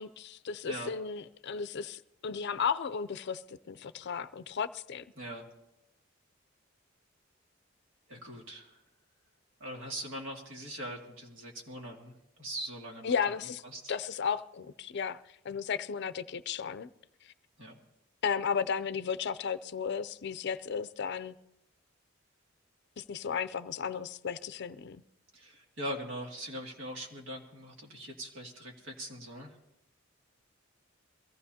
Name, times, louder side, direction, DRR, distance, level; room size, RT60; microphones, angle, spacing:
voice 1, 0.0-5.0 13.0-13.6 13.9-15.2 15.4-16.9 18.2-21.3 23.0-25.0, left 6 dB, 55° left, 13 dB, 0.5 m, -34 dB
voice 2, 8.1-8.7 9.6-13.4 13.6-13.9 17.6-17.8 25.3-29.6, equal, 65° right, 0 dB, 2.5 m, -41 dB
23.0 x 15.0 x 2.8 m, 0.89 s
head